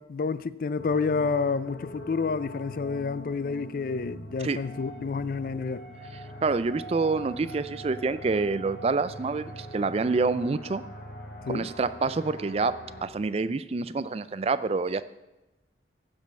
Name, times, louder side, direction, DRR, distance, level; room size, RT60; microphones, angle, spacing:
voice 1, 0.0-5.9 11.5-11.7, left 4 dB, 50° left, 0.4 m, -29 dB
sound 1, 0.8-13.0, equal, 70° left, 2.3 m, -42 dB
voice 2, 6.4-10.8 11.5-12.7 13.0-15.0, right 4 dB, 35° right, 0.4 m, -27 dB
15.5 x 5.2 x 5.4 m
head